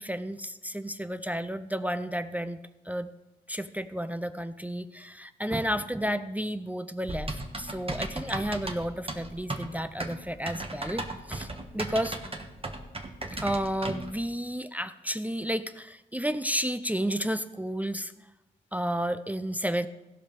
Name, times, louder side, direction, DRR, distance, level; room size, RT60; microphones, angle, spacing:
voice 1, 0.0-2.6 2.9-3.1 3.5-11.5 11.7-12.2 13.3-18.1 18.7-19.9, equal, 10° right, 11 dB, 0.5 m, -32 dB
Typing, 7.1-14.1, right 2 dB, 30° right, 1.4 m, -36 dB
15.5 x 5.5 x 5.3 m, 1.0 s
cardioid pair, 50°, 19 cm